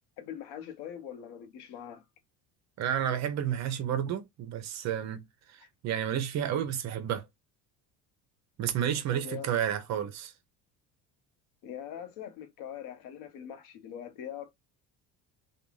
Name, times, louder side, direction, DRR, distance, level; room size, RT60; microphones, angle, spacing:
voice 1, 0.2-2.0 9.1-9.5 11.6-14.5, left 9 dB, 75° left, 0.8 m, -42 dB
voice 2, 2.8-7.3 8.6-10.3, right 9 dB, 45° right, 0.5 m, -31 dB
2.4 x 2.3 x 3.0 m
cardioid pair, 135°, 39 cm